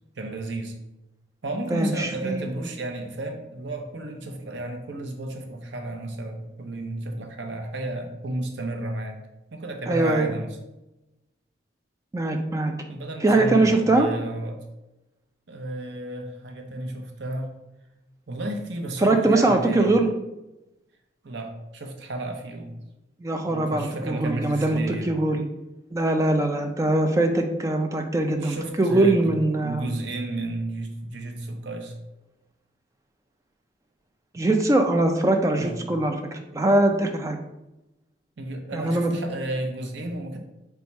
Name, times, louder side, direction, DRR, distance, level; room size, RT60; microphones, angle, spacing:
voice 1, 0.2-0.7 1.4-9.2 9.5-10.6 12.9-14.6 15.5-17.5 18.3-19.9 21.2-22.8 23.4-25.2 28.4-29.3 29.6-32.0 35.6-35.8 38.4-40.4, right 2 dB, 70° right, 3 dB, 0.6 m, -32 dB
voice 2, 1.7-2.5 9.9-10.3 12.1-12.7 13.2-14.1 19.0-20.1 23.2-25.4 25.9-29.8 34.3-37.4 38.7-39.1, right 2 dB, 15° right, 4 dB, 0.3 m, -22 dB
4.0 x 2.3 x 4.4 m, 0.97 s
head